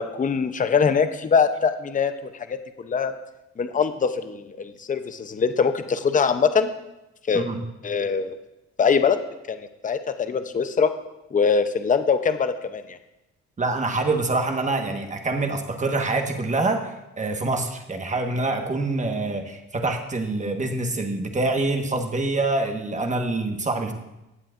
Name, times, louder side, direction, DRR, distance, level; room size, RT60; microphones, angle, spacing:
voice 1, 0.0-3.1 3.6-6.7 7.3-7.5 7.8-8.4 8.8-9.2 9.5-10.9 11.3-13.0, left 6 dB, 25° left, 9 dB, 0.7 m, -23 dB
voice 2, 13.6-23.9, right 2 dB, 25° right, 4 dB, 1.3 m, -25 dB
18.0 x 7.5 x 2.5 m, 0.94 s
cardioid pair, 90°, 30 cm